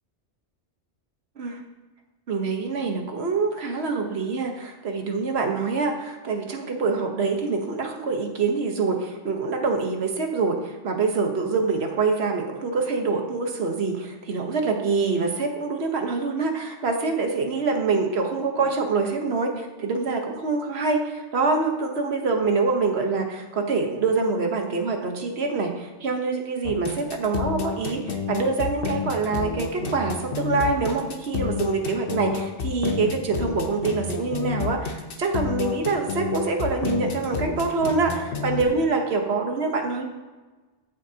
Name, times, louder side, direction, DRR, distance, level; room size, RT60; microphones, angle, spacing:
voice 1, 2.3-40.0, right 4 dB, 65° right, 3 dB, 1.4 m, -25 dB
sound 1, 26.6-38.6, left 5 dB, 55° left, 1.0 m, -30 dB
14.5 x 7.6 x 2.8 m, 1.3 s
omnidirectional pair, 1.2 m